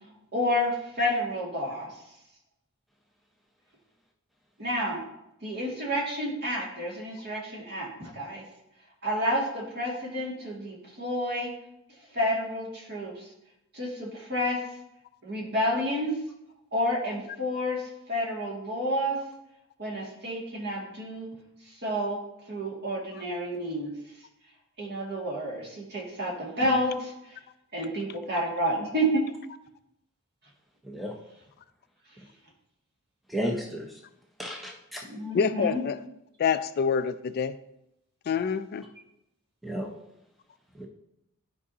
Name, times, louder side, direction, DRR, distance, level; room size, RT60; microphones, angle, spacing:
voice 1, 0.3-1.9 4.6-5.0 5.4-8.4 9.0-11.5 12.1-13.2 13.7-14.6 15.2-16.1 16.7-19.2 19.8-21.3 21.8-22.2 22.5-23.9 24.8-27.1 27.7-29.1 35.1-35.8, equal, 50° right, -3 dB, 2.2 m, -30 dB
voice 2, 30.8-31.1 33.3-34.0 34.4-35.1 39.6-39.9 40.8-40.9, equal, ahead, 0 dB, 0.6 m, -33 dB
voice 3, 35.3-36.0 36.4-37.5 38.3-38.8, left 6 dB, 45° left, 12 dB, 0.3 m, -26 dB
12.0 x 4.8 x 2.8 m, 0.85 s
head